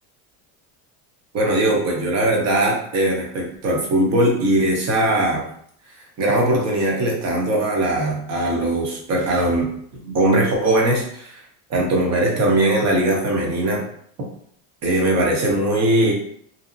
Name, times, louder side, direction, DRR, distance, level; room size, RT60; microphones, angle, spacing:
voice 1, 1.3-5.4 6.2-9.7 10.0-11.4 11.7-13.8 14.8-16.1, right 1 dB, 40° right, -1 dB, 0.8 m, -20 dB
2.7 x 2.0 x 2.5 m, 0.65 s
supercardioid pair, 120°, 42 cm